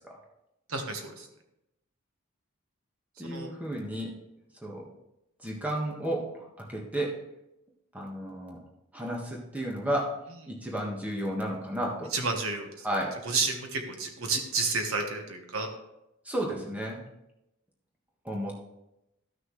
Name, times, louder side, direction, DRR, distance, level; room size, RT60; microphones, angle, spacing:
voice 1, 0.7-1.3 3.2-3.5 12.1-12.9 13.2-15.7, right 3 dB, 80° right, 4 dB, 1.3 m, -31 dB
voice 2, 3.2-4.1 4.6-4.8 5.4-7.1 7.9-8.6 8.9-10.1 10.5-12.1 12.8-13.2 16.2-17.0 18.2-18.6, right 1 dB, 5° right, -2 dB, 1.5 m, -32 dB
14.0 x 6.2 x 3.2 m, 0.88 s
head